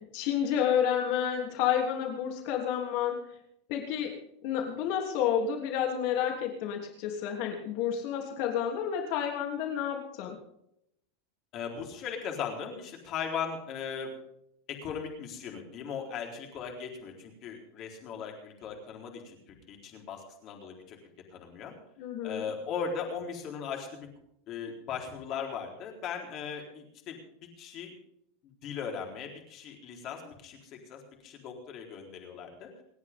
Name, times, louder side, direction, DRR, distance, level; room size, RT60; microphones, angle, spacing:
voice 1, 0.1-3.2 3.7-4.1 4.4-10.4 22.0-22.5, left 9 dB, 50° left, 2 dB, 3.2 m, -30 dB
voice 2, 11.5-14.1 14.7-21.0 21.3-21.7 22.2-24.1 24.5-27.2 27.6-27.9 28.4-32.7, left 6 dB, 35° left, 1 dB, 4.1 m, -38 dB
28.5 x 9.5 x 3.7 m, 0.76 s
supercardioid pair, 165°, 0 cm